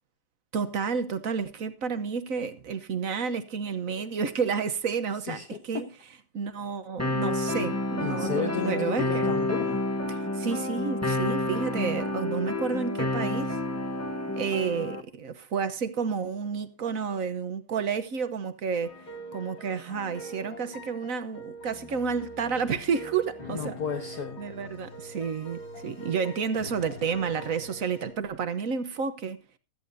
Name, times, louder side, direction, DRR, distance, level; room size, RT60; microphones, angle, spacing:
voice 1, 0.5-5.9 6.3-9.3 10.1-13.6 14.3-18.9 19.3-23.8 24.4-29.4, right 6 dB, 50° right, 1.2 m, -30 dB
voice 2, 5.3-5.8 8.0-9.8 23.5-24.4, left 6 dB, 50° left, 1.6 m, -33 dB
sound 1, 7.0-15.0, left 2 dB, 10° left, 0.8 m, -29 dB
sound 2, 18.8-28.1, right 1 dB, 80° left, 4.6 m, -43 dB
16.5 x 13.5 x 2.7 m
omnidirectional pair, 2.2 m